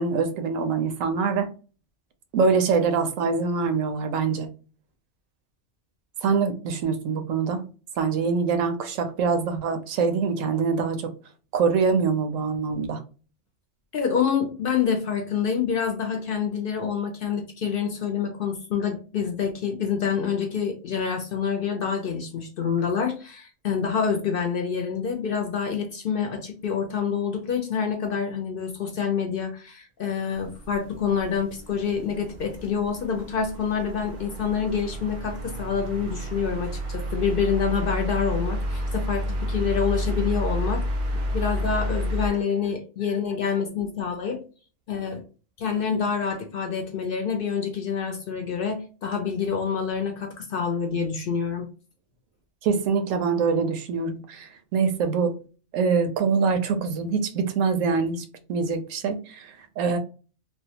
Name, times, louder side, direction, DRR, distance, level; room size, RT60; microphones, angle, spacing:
voice 1, 0.0-1.5 2.3-4.5 6.2-7.6 8.0-11.1 11.5-13.0 52.6-55.3 55.7-60.0, right 5 dB, 90° right, 7 dB, 1.0 m, -24 dB
voice 2, 13.9-40.8 41.3-44.4 44.9-45.2 45.6-51.7, left 6 dB, 60° left, 3 dB, 0.6 m, -27 dB
sound 1, 30.3-42.3, equal, 60° right, 0.6 m, -30 dB
2.7 x 2.1 x 2.8 m, 0.36 s
omnidirectional pair, 1.3 m